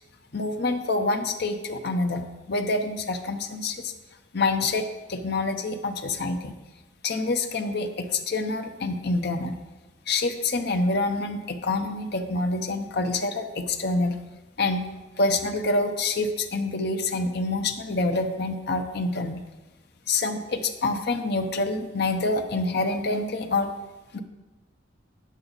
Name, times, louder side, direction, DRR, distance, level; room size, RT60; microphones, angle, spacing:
voice 1, 0.3-3.9 4.3-6.5 7.0-9.6 10.1-14.1 14.6-14.9 15.2-19.4 20.1-23.7 24.1-24.2, left 2 dB, 55° left, 6 dB, 0.7 m, -26 dB
8.9 x 7.5 x 4.0 m, 1.1 s
head